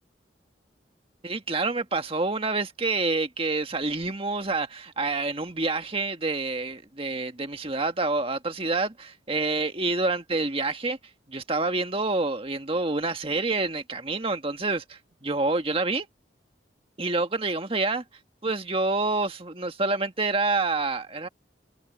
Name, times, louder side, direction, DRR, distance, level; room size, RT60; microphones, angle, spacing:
voice 1, 1.2-11.0 11.3-16.1 17.0-18.0 18.4-21.3, right 3 dB, 30° right, 1.7 m, -27 dB
open air
head